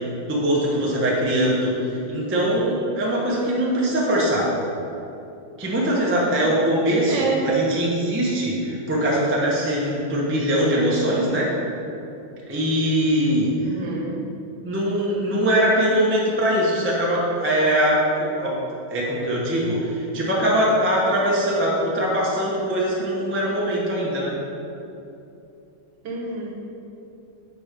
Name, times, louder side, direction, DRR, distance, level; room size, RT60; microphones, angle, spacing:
voice 1, 0.2-4.5 5.6-11.5 12.5-13.8 14.6-18.6 18.9-24.3, equal, 20° right, -5 dB, 0.3 m, -22 dB
voice 2, 7.1-7.5 13.6-14.2 26.0-26.5, right 4 dB, 60° right, -3 dB, 1.5 m, -28 dB
5.4 x 4.8 x 5.0 m, 2.8 s
omnidirectional pair, 2.3 m